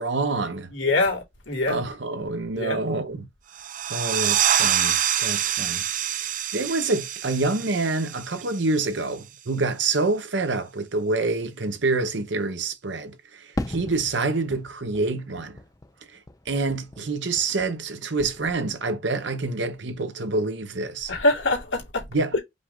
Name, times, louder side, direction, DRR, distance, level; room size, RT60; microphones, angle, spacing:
voice 1, 0.0-0.7 1.7-3.3 3.9-6.1 6.5-15.6 16.1-16.2 16.5-21.1 22.1-22.3, right 3 dB, 70° right, 0.9 m, -27 dB
voice 2, 0.7-1.8 2.5-2.8 21.1-22.1 22.3-22.4, left 2 dB, 85° left, 2.2 m, -24 dB
sound 1, 3.5-8.9, right 10 dB, 45° right, 0.4 m, -26 dB
Fireworks, 13.6-17.9 18.2-19.0, left 1 dB, 20° left, 0.5 m, -38 dB
5.2 x 2.5 x 3.7 m
head